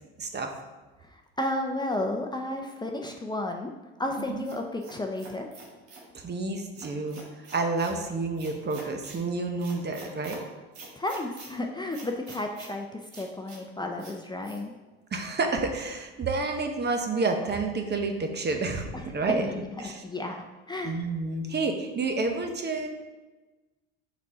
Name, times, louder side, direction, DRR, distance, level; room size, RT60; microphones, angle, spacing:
voice 1, 0.2-0.5 4.3-4.5 6.1-7.2 7.5-10.4 15.1-19.5 19.8-20.0 20.8-22.9, right 3 dB, 35° right, 4 dB, 0.9 m, -29 dB
voice 2, 1.0-3.7 4.0-5.5 11.0-14.7 18.9-19.0 19.3-20.3 20.7-21.0, left 1 dB, 15° left, 2 dB, 0.6 m, -32 dB
sound 1, 4.1-6.1 6.7-8.0 8.4-9.2 9.6-10.4 10.7-11.5 11.9-12.7 13.1-13.6 14.0-14.1 14.4-14.6, right 3 dB, 80° right, 1.5 m, -46 dB
5.1 x 4.3 x 4.7 m, 1.2 s
hypercardioid pair, 70°, 30 cm